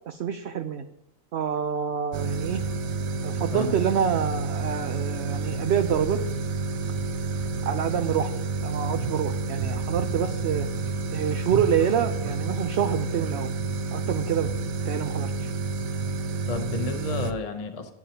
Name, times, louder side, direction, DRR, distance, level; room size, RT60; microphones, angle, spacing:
voice 1, 0.1-0.8 1.3-2.6 3.2-6.2 7.6-8.3 8.6-10.7 11.1-13.5 13.9-14.5 14.8-15.5, right 8 dB, 60° right, 7 dB, 0.7 m, -27 dB
sound 1, 2.1-17.3, right 4 dB, 85° right, 1.2 m, -29 dB
voice 2, 3.5-4.0 16.5-17.9, left 3 dB, 30° left, 5 dB, 0.8 m, -32 dB
16.5 x 8.7 x 2.9 m, 0.83 s
omnidirectional pair, 1.4 m